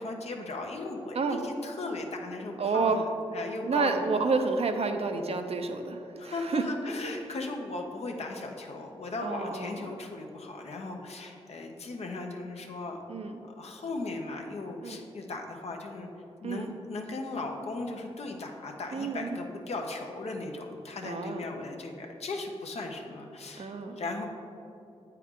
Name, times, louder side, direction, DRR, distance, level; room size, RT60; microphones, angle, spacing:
voice 1, 0.0-3.0 3.3-4.2 6.2-13.0 13.6-16.1 16.4-24.3, left 2 dB, 75° left, 2 dB, 0.8 m, -37 dB
voice 2, 2.6-3.0 3.7-6.6 9.2-9.9 13.1-13.4 14.8-15.0 16.4-16.7 18.9-19.4 21.0-21.4 23.6-24.0, right 4 dB, 65° right, 6 dB, 0.6 m, -29 dB
8.1 x 4.6 x 3.7 m, 2.8 s
cardioid pair, 50°, 11 cm